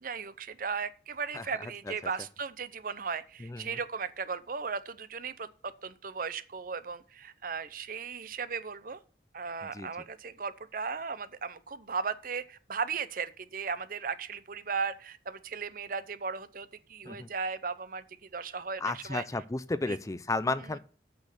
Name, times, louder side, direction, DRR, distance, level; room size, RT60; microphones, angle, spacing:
voice 1, 0.0-9.0 9.3-18.0 18.3-19.2 19.8-20.0, right 5 dB, 50° right, 0.7 m, -36 dB
voice 2, 3.4-3.8 9.7-9.9 17.1-17.3 18.8-20.8, left 3 dB, 20° left, 0.4 m, -33 dB
8.5 x 6.2 x 6.6 m
head